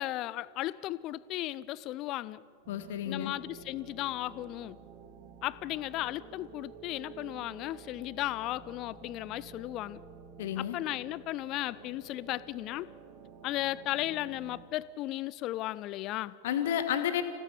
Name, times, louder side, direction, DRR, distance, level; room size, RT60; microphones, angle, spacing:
voice 1, 0.0-2.4 3.1-4.8 5.4-10.0 10.6-12.9 13.4-16.4, left 15 dB, 40° left, 19 dB, 0.6 m, -35 dB
sound 1, 2.6-14.7, right 7 dB, 40° right, 2.4 m, -51 dB
voice 2, 2.7-3.3 10.4-10.8 16.4-17.2, left 10 dB, 55° left, 9 dB, 1.8 m, -31 dB
26.5 x 16.5 x 7.1 m, 2.3 s
figure-of-eight pair, 90°, 0 cm